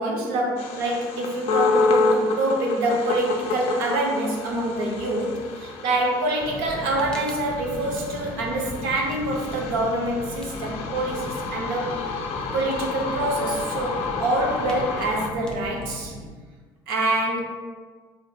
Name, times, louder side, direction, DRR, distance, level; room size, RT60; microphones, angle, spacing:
voice 1, 0.0-12.0 12.5-16.1 16.9-17.4, right 1 dB, 80° right, -1 dB, 0.6 m, -26 dB
sound 1, 0.6-15.3, left 4 dB, 60° left, 0.4 m, -29 dB
Fire, 6.4-16.3, left 1 dB, 5° left, 0.5 m, -38 dB
2.8 x 2.5 x 2.3 m, 1.4 s
hypercardioid pair, 70°, 12 cm